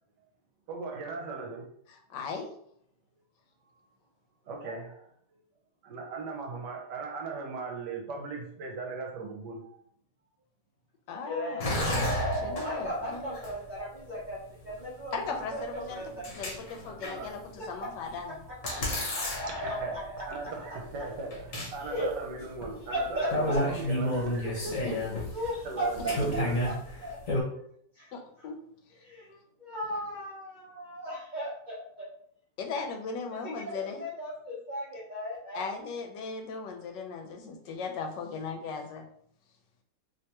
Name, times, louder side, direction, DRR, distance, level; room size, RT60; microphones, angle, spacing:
voice 1, 0.7-1.7 4.5-5.1 5.8-9.7 16.8-17.4 19.5-25.0 25.6-26.6, right 4 dB, 70° right, 1 dB, 1.3 m, -38 dB
voice 2, 2.1-2.5 11.1-13.3 15.1-18.4 24.8-25.2 28.1-28.6 32.6-34.0 35.5-39.0, left 4 dB, 80° left, 4 dB, 1.2 m, -38 dB
voice 3, 11.2-11.7 12.6-16.6 17.6-17.7 19.1-19.5 21.8-22.1 22.9-23.6 25.3-26.7 27.0-27.2 27.9-28.1 29.0-32.1 33.3-35.7, equal, 50° right, -8 dB, 0.5 m, -36 dB
sound 1, 11.6-13.7 14.7-14.8 16.0-17.3 18.1-18.2 18.6-21.0 21.3-21.7 22.0-22.1 22.6-22.7 22.9-23.0 23.3-27.4, left 1 dB, 50° left, 1.3 m, -31 dB
3.3 x 3.1 x 2.9 m, 0.66 s
omnidirectional pair, 2.0 m